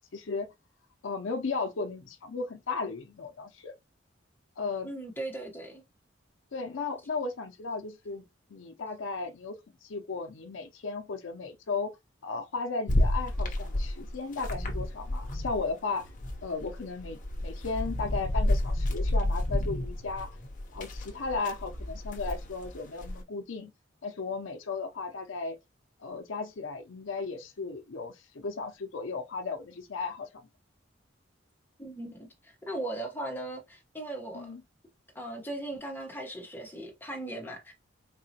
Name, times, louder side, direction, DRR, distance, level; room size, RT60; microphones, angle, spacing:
voice 1, 0.1-0.5 1.0-3.7 4.6-4.9 6.5-8.2 8.5-12.0 12.2-16.1 16.4-20.4 20.7-23.7 24.0-25.6 26.0-30.3 34.3-34.6, left 4 dB, 85° left, 0.6 m, -35 dB
voice 2, 4.8-5.8 31.8-34.5 35.1-37.7, right 1 dB, 10° left, 1.1 m, -38 dB
sound 1, 12.9-15.7 16.0-23.2, left 1 dB, 40° left, 0.8 m, -31 dB
4.1 x 2.8 x 2.8 m
head